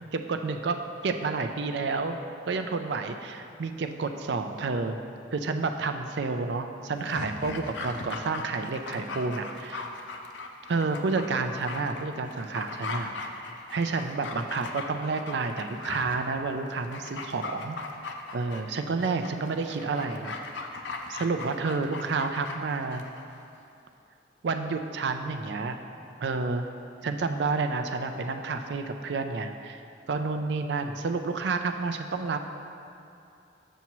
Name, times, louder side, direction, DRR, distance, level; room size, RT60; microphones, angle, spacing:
voice 1, 0.1-0.8 1.0-2.2 2.5-5.0 5.3-9.8 10.7-13.1 13.7-17.8 18.3-20.3 20.7-20.8 21.1-23.0 24.4-25.8 26.2-26.7 27.0-29.8 30.1-32.4, right 4 dB, 65° right, 6 dB, 0.4 m, -30 dB
Dog, 7.0-23.2 23.5-23.6, left 3 dB, 75° left, 0.5 m, -39 dB
7.2 x 6.8 x 3.0 m, 2.6 s
head